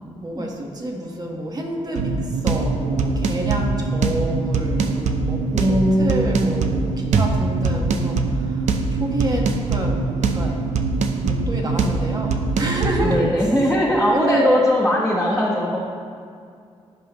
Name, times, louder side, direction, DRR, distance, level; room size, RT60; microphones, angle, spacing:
voice 1, 0.0-10.7 11.2-13.3 14.0-14.5, right 1 dB, 35° right, 0 dB, 1.5 m, -29 dB
sound 1, 1.9-13.3, right 4 dB, 80° right, 0.6 m, -22 dB
voice 2, 5.5-6.7 13.0-15.8, equal, 5° right, -7 dB, 1.4 m, -20 dB
15.5 x 5.3 x 3.1 m, 2.3 s
cardioid pair, 90°, 12 cm